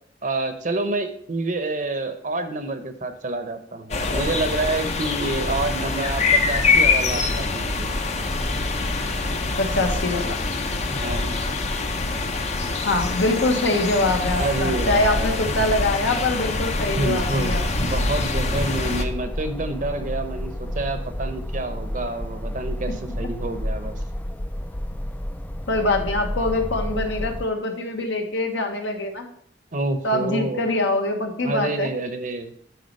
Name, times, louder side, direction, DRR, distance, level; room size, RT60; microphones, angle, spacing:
voice 1, 0.2-7.9 10.9-11.4 14.4-15.4 17.0-24.0 29.7-30.7 31.4-32.5, right 2 dB, 45° right, 8 dB, 0.8 m, -28 dB
sound 1, 3.9-19.0, left 3 dB, 35° left, 0.7 m, -24 dB
voice 2, 9.6-10.4 12.8-17.9 25.7-29.3 30.0-31.9, left 2 dB, 75° left, 3 dB, 1.3 m, -24 dB
sound 2, 17.4-27.5, equal, 10° left, 0.3 m, -31 dB
9.5 x 4.1 x 5.3 m, 0.65 s
head